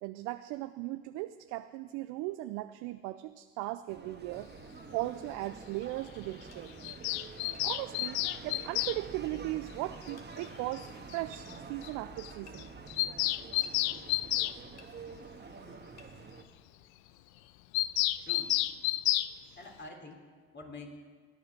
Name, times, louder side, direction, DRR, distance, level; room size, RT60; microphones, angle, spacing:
voice 1, 0.0-4.5 4.9-6.9 7.6-12.7, right 17 dB, 75° right, 10 dB, 0.6 m, -38 dB
sound 1, 3.9-16.4, right 4 dB, 35° right, 1.6 m, -48 dB
sound 2, 6.5-6.7 7.5-7.7 8.8-9.0 10.2-10.3 11.3-11.5 12.5-12.6 13.6-13.8 14.8-14.9 16.0-16.1, left 5 dB, 55° left, 2.1 m, -57 dB
Bird vocalization bird call bird song, 6.8-9.0 10.4-10.5 10.8-10.9 11.1-11.2 11.5-11.6 11.8-11.9 12.2-12.3 12.6-14.6 17.7-19.3, left 17 dB, 80° left, 0.5 m, -30 dB
voice 2, 18.2-18.9 19.6-20.9, left 3 dB, 35° left, 2 dB, 3.4 m, -48 dB
17.0 x 10.0 x 6.1 m, 1.6 s
hypercardioid pair, 60°, 31 cm